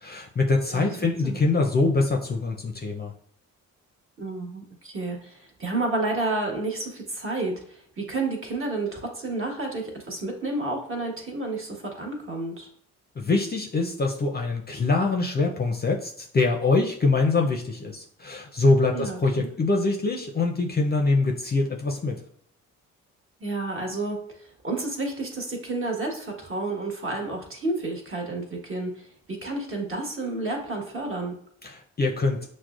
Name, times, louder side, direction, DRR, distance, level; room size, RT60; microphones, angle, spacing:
voice 1, 0.0-3.1 13.2-22.2 31.6-32.4, left 3 dB, 25° left, 2 dB, 0.5 m, -24 dB
voice 2, 4.2-12.7 18.9-19.5 23.4-31.3, right 2 dB, 35° right, 0 dB, 1.3 m, -31 dB
5.9 x 2.1 x 2.4 m, 0.64 s
supercardioid pair, 50°, 36 cm